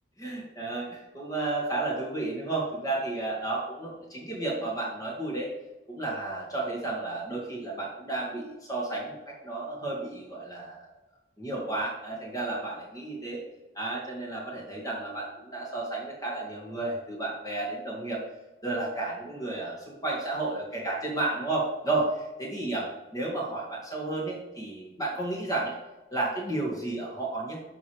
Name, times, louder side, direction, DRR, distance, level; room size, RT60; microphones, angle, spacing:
voice 1, 0.2-5.5 5.9-10.9 11.4-13.4 13.8-18.2 18.6-25.8 26.1-27.7, right 2 dB, 20° left, -4 dB, 1.9 m, -32 dB
12.5 x 4.7 x 3.3 m, 1.1 s
head